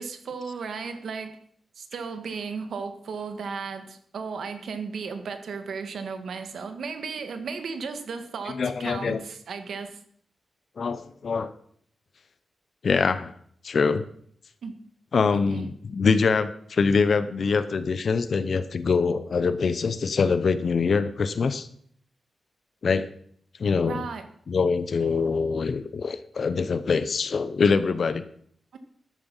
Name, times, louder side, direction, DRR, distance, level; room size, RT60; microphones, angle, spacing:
voice 1, 0.0-1.4 1.7-10.0 14.6-14.8 15.3-15.7 23.8-24.2 28.7-28.8, right 5 dB, 65° right, 8 dB, 1.6 m, -35 dB
voice 2, 8.5-9.2 10.8-11.5 12.8-13.3 13.6-14.0 15.1-21.7 22.8-23.1 23.6-24.0 24.5-28.2, left 5 dB, 45° left, 13 dB, 0.7 m, -24 dB
13.5 x 11.0 x 5.5 m, 0.64 s
wide cardioid pair, 175°, 0 cm